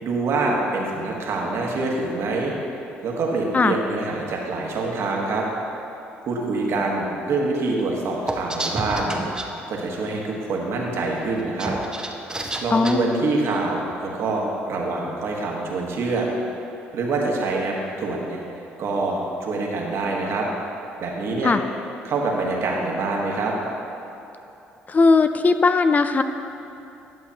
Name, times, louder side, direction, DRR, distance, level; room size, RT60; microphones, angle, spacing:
voice 1, 0.0-2.5 3.0-5.5 6.3-9.2 9.7-11.7 12.6-16.3 16.9-18.4 18.8-20.5 21.0-21.5 22.0-23.5, right 3 dB, 60° right, -1 dB, 1.3 m, -25 dB
sound 1, 8.3-9.5 11.4-12.9, right 1 dB, 15° right, 0.8 m, -29 dB
voice 2, 12.7-13.0 21.4-21.6 24.9-26.2, left 4 dB, 30° left, 9 dB, 0.4 m, -18 dB
11.0 x 6.8 x 2.8 m, 2.9 s
hypercardioid pair, 55°, 5 cm